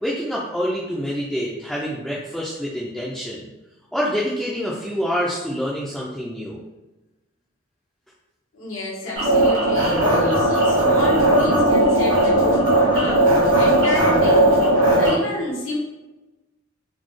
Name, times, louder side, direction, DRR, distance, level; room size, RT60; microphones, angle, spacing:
voice 1, 0.0-3.5 3.9-6.6, equal, ahead, -7 dB, 0.3 m, -26 dB
voice 2, 8.5-14.6 14.9-15.8, left 1 dB, 90° left, -3 dB, 1.0 m, -29 dB
sound 1, 9.2-15.1, right 1 dB, 80° right, 1.3 m, -17 dB
4.0 x 2.0 x 3.1 m, 1.1 s
head